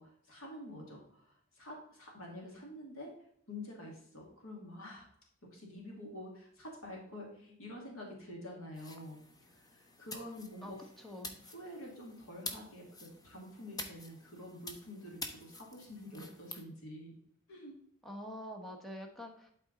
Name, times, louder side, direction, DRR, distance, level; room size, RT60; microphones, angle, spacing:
voice 1, 0.0-3.1 3.5-5.1 5.4-10.8 11.4-17.1 17.5-17.7, left 1 dB, 75° left, -1 dB, 2.4 m, -48 dB
sound 1, 8.7-16.6, left 2 dB, 20° left, 0.8 m, -48 dB
voice 2, 10.6-11.4 18.0-19.5, equal, ahead, 1 dB, 1.2 m, -46 dB
11.5 x 4.3 x 3.9 m, 0.67 s
head